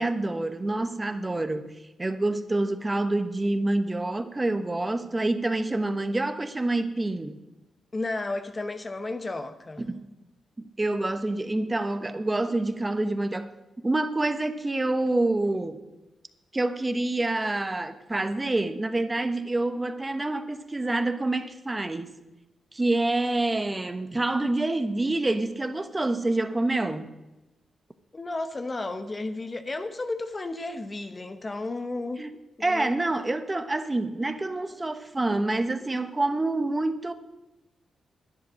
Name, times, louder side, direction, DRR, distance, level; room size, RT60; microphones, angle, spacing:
voice 1, 0.0-1.7 2.0-7.4 9.8-10.0 10.8-13.5 13.8-15.8 16.5-22.1 22.7-27.1 32.2-32.3 32.6-37.1, right 2 dB, 25° right, 1.1 m, -27 dB
voice 2, 7.9-9.8 28.1-32.3 32.6-33.0, left 2 dB, 35° left, 1.0 m, -33 dB
11.0 x 10.5 x 6.3 m
cardioid pair, 60°, 0 cm